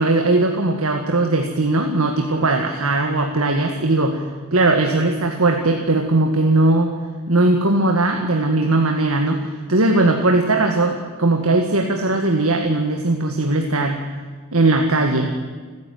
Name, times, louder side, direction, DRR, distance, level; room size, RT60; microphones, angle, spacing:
voice 1, 0.0-4.2 4.5-6.9 7.3-9.4 9.7-14.0 14.5-15.3, right 2 dB, 80° right, 3 dB, 1.8 m, -19 dB
29.5 x 10.5 x 9.3 m, 1.4 s
head